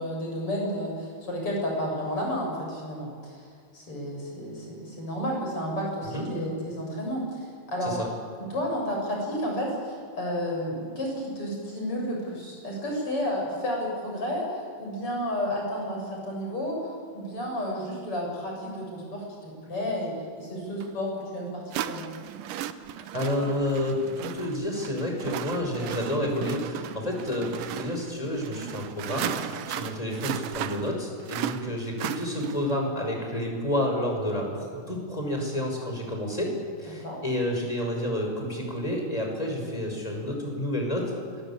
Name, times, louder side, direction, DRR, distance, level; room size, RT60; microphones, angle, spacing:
voice 1, 0.0-3.4 3.7-7.9 8.5-22.1 37.0-37.2, equal, 40° left, -1 dB, 8.2 m, -31 dB
sound 1, 20.8-20.9 21.7-32.8, right 11 dB, 85° right, 2.5 m, -36 dB
voice 2, 23.0-36.5 36.8-41.1, left 1 dB, 10° left, 1 dB, 5.7 m, -30 dB
26.5 x 22.0 x 8.8 m, 2.1 s
omnidirectional pair, 3.7 m